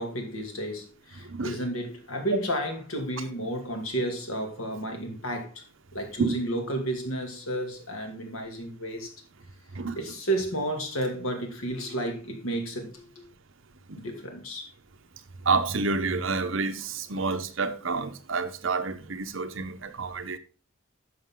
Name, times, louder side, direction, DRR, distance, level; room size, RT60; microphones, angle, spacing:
voice 1, 0.0-5.6 5.9-9.1 10.0-13.3 14.0-14.7, right 1 dB, 90° left, 2.5 m, -32 dB
voice 2, 15.5-20.4, right 4 dB, 70° right, 0.9 m, -29 dB
10.5 x 6.6 x 3.8 m
head